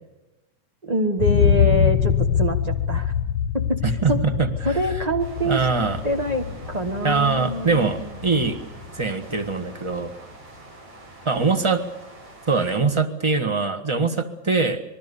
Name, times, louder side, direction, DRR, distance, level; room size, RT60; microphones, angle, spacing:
voice 1, 0.8-3.1 3.5-4.2 4.6-5.6 6.0-8.1, equal, 50° right, 3 dB, 0.4 m, -25 dB
sound 1, 1.2-9.1 9.5-9.6, left 8 dB, 65° left, 1.4 m, -24 dB
voice 2, 3.8-4.8 5.4-6.0 7.0-8.6 8.9-10.1 11.2-11.8 12.5-14.8, right 4 dB, 20° right, 8 dB, 0.9 m, -22 dB
sound 2, 5.2-12.8, right 1 dB, 80° right, 7.9 m, -43 dB
26.5 x 21.0 x 7.0 m, 1.0 s
omnidirectional pair, 3.3 m